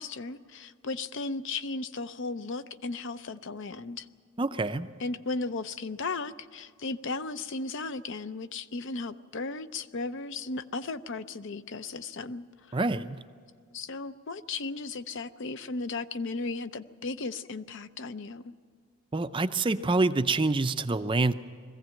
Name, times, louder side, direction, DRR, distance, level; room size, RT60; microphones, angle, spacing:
voice 1, 0.0-4.1 5.0-12.8 13.7-18.5, left 3 dB, 55° left, 13 dB, 0.6 m, -36 dB
voice 2, 4.4-4.9 12.7-13.2 19.1-21.3, right 3 dB, 20° right, 11 dB, 0.5 m, -26 dB
21.5 x 15.5 x 9.0 m, 2.1 s
head